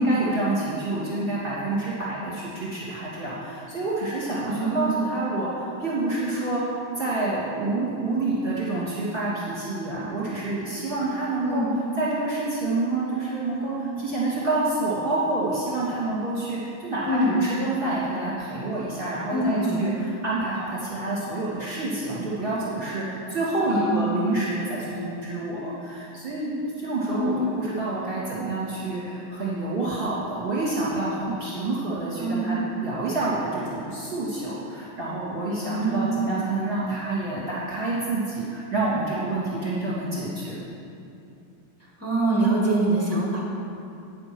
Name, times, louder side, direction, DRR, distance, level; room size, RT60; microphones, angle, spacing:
voice 1, 0.0-11.6 12.0-19.9 20.2-40.7, right 2 dB, 25° right, -10 dB, 2.6 m, -28 dB
voice 2, 4.5-5.0 11.4-11.7 17.0-17.3 19.3-19.8 23.7-24.1 27.1-27.4 32.2-32.5 35.6-36.3 42.0-43.4, right 2 dB, 10° right, -4 dB, 1.7 m, -24 dB
9.7 x 6.8 x 6.1 m, 2.7 s
omnidirectional pair, 2.2 m